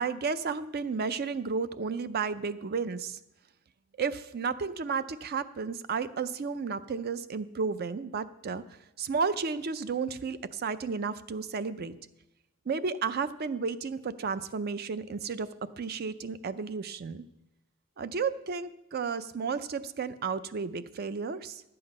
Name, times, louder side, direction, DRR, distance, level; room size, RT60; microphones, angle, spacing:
voice 1, 0.0-3.2 4.0-8.6 9.0-11.9 12.7-15.5 15.8-17.2 18.0-21.6, right 5 dB, 50° right, 14 dB, 0.5 m, -32 dB
12.0 x 7.8 x 5.3 m, 0.90 s
head